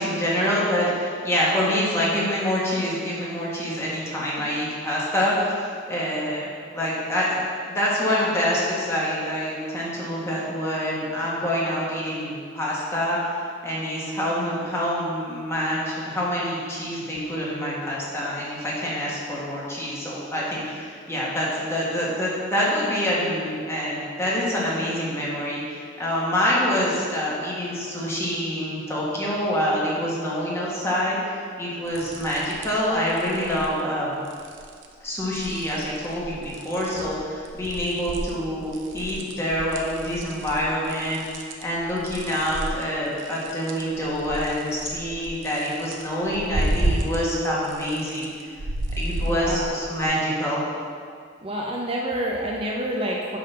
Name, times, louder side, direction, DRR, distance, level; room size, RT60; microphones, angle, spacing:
voice 1, 0.0-5.5 5.9-6.5 6.7-7.4 7.7-13.3 13.6-25.6 26.0-31.2 31.6-34.2 35.0-48.3 49.0-50.6, equal, 15° left, -6 dB, 1.6 m, -26 dB
sound 1, 31.9-32.8 33.1-33.7 34.2-34.9 35.2-37.1 37.4-47.4 47.6-50.1, right 1 dB, 90° right, 0.7 m, -32 dB
voice 2, 49.3-49.8 51.4-53.4, right 1 dB, 30° right, -2 dB, 0.6 m, -28 dB
8.4 x 3.9 x 5.6 m, 2.1 s
head